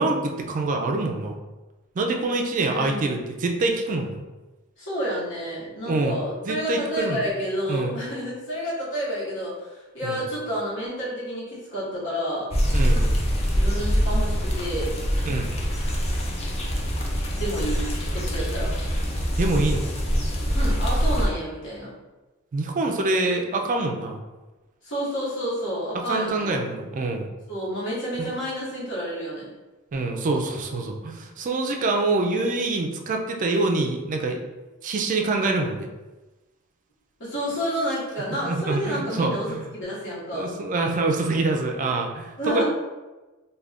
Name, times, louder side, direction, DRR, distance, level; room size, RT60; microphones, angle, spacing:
voice 1, 0.0-1.3 2.0-4.2 5.9-7.2 7.7-8.0 10.0-10.2 12.7-13.2 15.2-15.6 19.4-19.9 22.5-24.2 25.9-27.3 29.9-34.4 34.8-35.9 38.4-39.7 40.3-42.6, right 2 dB, 40° right, 3 dB, 0.3 m, -25 dB
voice 2, 2.7-3.1 4.8-12.5 13.5-14.9 17.3-17.8 18.1-18.7 20.5-21.9 24.8-26.5 27.5-29.5 37.2-40.5 42.4-42.6, equal, 60° left, -7 dB, 1.1 m, -30 dB
sound 1, 12.5-21.3, equal, 30° left, 0.4 m, -24 dB
2.4 x 2.2 x 3.4 m, 1.2 s
head